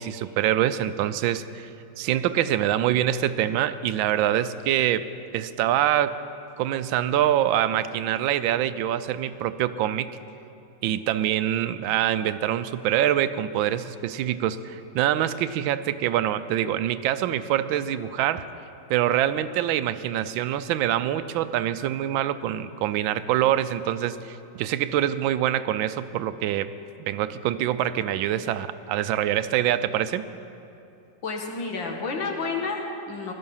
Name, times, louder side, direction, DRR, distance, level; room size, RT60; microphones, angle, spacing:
voice 1, 0.0-1.7 2.0-5.1 5.3-6.2 6.6-10.1 10.8-18.5 18.9-26.7 27.0-30.3, right 11 dB, 90° right, 13 dB, 1.4 m, -25 dB
voice 2, 31.2-33.3, left 4 dB, 75° left, 2 dB, 2.3 m, -30 dB
17.0 x 12.0 x 5.6 m, 2.8 s
omnidirectional pair, 2.1 m